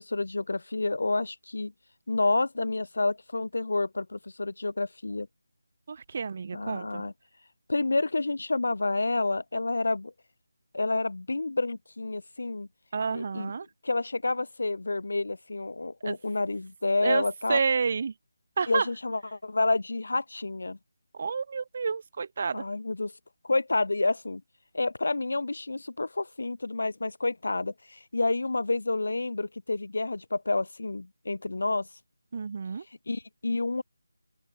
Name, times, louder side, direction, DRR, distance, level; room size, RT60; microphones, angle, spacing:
voice 1, 0.0-1.7 2.1-5.3 6.5-7.1 7.7-10.1 10.7-12.7 13.1-13.5 13.8-17.6 18.7-20.8 22.5-23.1 23.4-24.4 24.7-31.9 33.1-33.8, left 2 dB, 70° left, 2.8 m, -29 dB
voice 2, 5.9-7.0 12.9-13.7 16.0-16.2 17.0-17.2 17.5-18.1 18.6-18.9 21.1-22.6 32.3-32.8, right 5 dB, 35° right, 1.2 m, -29 dB
open air
figure-of-eight pair, 170°, 0 cm